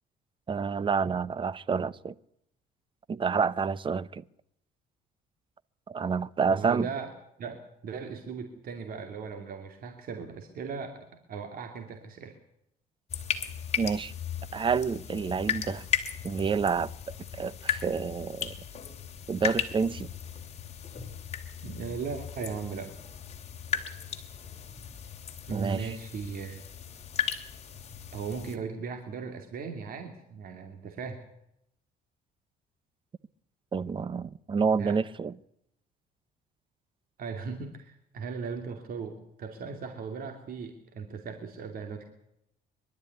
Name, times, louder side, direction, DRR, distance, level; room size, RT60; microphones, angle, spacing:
voice 1, 0.5-2.1 3.1-4.2 5.9-6.9 13.8-14.1 14.5-15.9 16.2-18.5 19.3-20.1 25.5-25.8 33.7-35.3, right 5 dB, 30° right, 0.8 m, -28 dB
voice 2, 6.5-7.1 7.4-12.4 21.6-22.9 25.5-26.6 28.1-31.2 34.8-35.0 37.2-42.0, right 5 dB, 60° right, 2.7 m, -38 dB
sound 1, 13.1-28.6, left 8 dB, 40° left, 2.9 m, -36 dB
23.0 x 12.5 x 9.5 m
cardioid pair, 110°, 17 cm